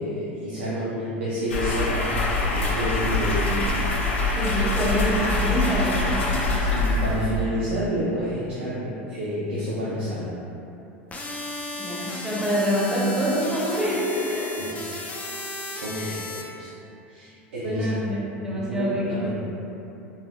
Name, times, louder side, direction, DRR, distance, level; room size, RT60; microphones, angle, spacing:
voice 1, 0.0-2.2 2.5-3.7 4.3-4.4 6.3-10.3 14.6-14.8 15.8-16.7 17.1-17.9 18.5-19.3, equal, 80° right, -9 dB, 0.5 m, -29 dB
sound 1, 1.5-7.5, left 2 dB, 85° left, 0.4 m, -24 dB
voice 2, 4.3-6.2 11.8-14.5 15.9-16.2 17.6-19.3, equal, 10° right, -7 dB, 0.8 m, -26 dB
sound 2, 11.1-16.4, left 2 dB, 25° left, 0.4 m, -35 dB
3.8 x 2.0 x 2.2 m, 2.9 s
hypercardioid pair, 90°, 6 cm